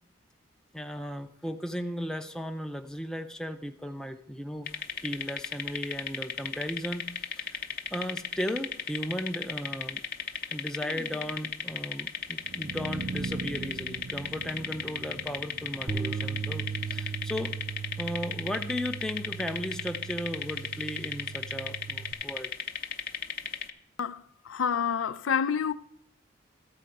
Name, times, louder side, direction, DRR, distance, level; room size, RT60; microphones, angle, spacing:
voice 1, 0.7-4.7 5.0-7.6 7.9-10.0 10.5-17.6 18.0-22.5, equal, 5° left, 0.5 m, -36 dB
sound 1, 4.7-23.7, left 7 dB, 50° left, 0.7 m, -35 dB
sound 2, 12.3-18.3, right 3 dB, 65° right, 0.5 m, -41 dB
Bass guitar, 15.9-22.1, right 6 dB, 40° right, 0.8 m, -37 dB
voice 2, 24.0-25.7, left 7 dB, 85° left, 0.5 m, -28 dB
13.5 x 4.7 x 7.7 m
head